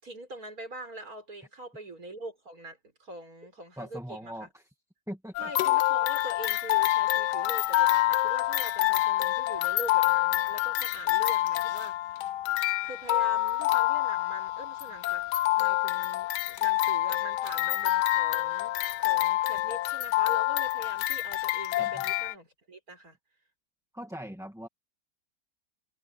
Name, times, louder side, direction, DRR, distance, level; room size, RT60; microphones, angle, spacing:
voice 1, 0.0-4.5 5.4-12.3 12.8-18.7 19.0-23.2, right 1 dB, 55° right, 5.8 m, -43 dB
voice 2, 3.8-4.7 5.1-5.5 21.8-22.0 23.9-24.7, equal, ahead, 1.2 m, -41 dB
sound 1, 5.3-22.3, left 16 dB, 85° left, 1.2 m, -27 dB
omnidirectional pair, 1.8 m